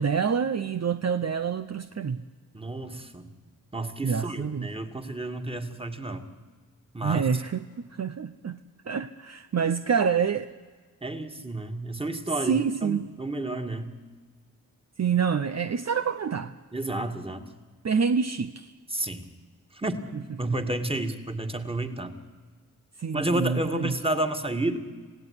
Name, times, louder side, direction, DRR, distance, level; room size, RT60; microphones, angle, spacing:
voice 1, 0.0-2.2 4.0-4.7 7.0-7.6 7.9-8.6 8.8-10.5 12.4-13.1 15.0-16.5 17.8-18.7 23.0-23.9, right 6 dB, 50° right, 0.8 m, -27 dB
voice 2, 2.5-3.3 3.7-6.2 6.9-7.2 11.0-13.9 16.7-17.4 18.9-19.3 19.7-20.0 20.4-22.2 23.1-24.8, right 1 dB, 15° right, 2.4 m, -31 dB
27.0 x 17.0 x 9.8 m
cardioid pair, 70°, 34 cm